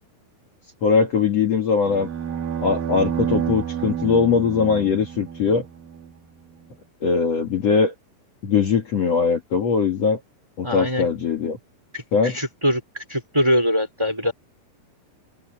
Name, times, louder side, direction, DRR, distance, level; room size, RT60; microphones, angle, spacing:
voice 1, 0.8-2.1 2.6-5.7 7.0-7.9 8.4-10.2 10.6-11.6 12.1-12.4, left 5 dB, 50° left, 2.9 m, -21 dB
sound 1, 1.9-6.1, right 8 dB, 70° right, 3.7 m, -29 dB
voice 2, 10.6-11.1 11.9-14.3, equal, 5° right, 3.8 m, -23 dB
open air
omnidirectional pair, 4.3 m